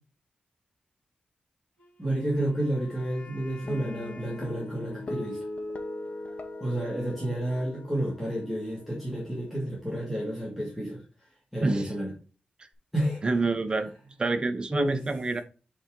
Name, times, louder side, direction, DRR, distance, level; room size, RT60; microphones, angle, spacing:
Wind instrument woodwind instrument, 1.8-5.8, left 2 dB, 75° left, 2.2 m, -52 dB
voice 1, 2.0-5.4 6.6-11.0 11.5-12.1 12.9-13.2 14.7-15.0, right 1 dB, 5° right, 1.7 m, -30 dB
sound 1, 3.7-10.3, left 2 dB, 45° left, 0.9 m, -40 dB
voice 2, 11.6-11.9 13.2-13.9 14.2-15.4, right 3 dB, 30° right, 0.6 m, -27 dB
8.0 x 3.7 x 3.6 m
wide cardioid pair, 160°, 3 cm